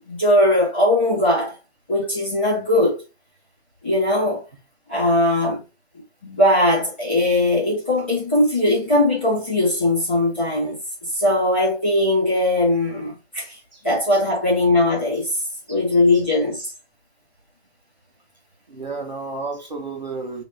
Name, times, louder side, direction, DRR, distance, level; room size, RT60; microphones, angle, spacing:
voice 1, 0.1-1.6 1.9-3.0 3.8-4.4 4.9-5.6 6.2-13.6 13.8-15.4 15.7-16.7, left 1 dB, 10° left, 1.2 m, -20 dB
voice 2, 18.7-20.4, right 3 dB, 40° right, 1.1 m, -31 dB
5.5 x 3.0 x 2.7 m
hypercardioid pair, 175°, 33 cm